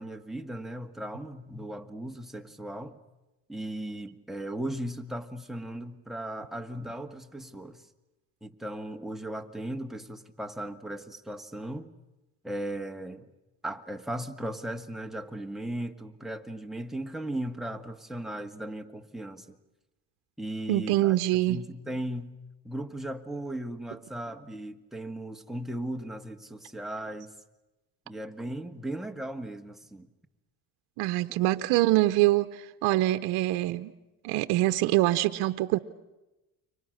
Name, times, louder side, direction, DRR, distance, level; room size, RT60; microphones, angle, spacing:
voice 1, 0.0-3.0 3.5-7.8 8.4-11.9 12.4-13.3 13.6-19.6 20.4-21.2 21.5-22.4 22.6-27.3 28.1-30.1, right 1 dB, ahead, 1.8 m, -37 dB
voice 2, 20.7-21.6 31.0-33.9 34.2-35.8, right 16 dB, 80° right, 0.9 m, -24 dB
30.0 x 24.0 x 6.5 m
supercardioid pair, 85°, 37 cm